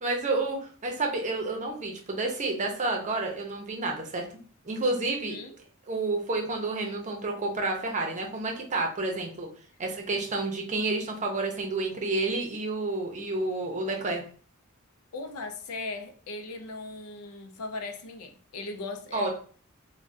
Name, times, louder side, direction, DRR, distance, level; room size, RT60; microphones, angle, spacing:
voice 1, 0.0-4.2 4.6-5.4 5.9-9.5 9.8-14.2 19.1-19.3, right 2 dB, 35° right, 0.6 m, -30 dB
voice 2, 15.1-19.3, left 3 dB, 80° left, 0.5 m, -38 dB
3.4 x 2.2 x 2.6 m
head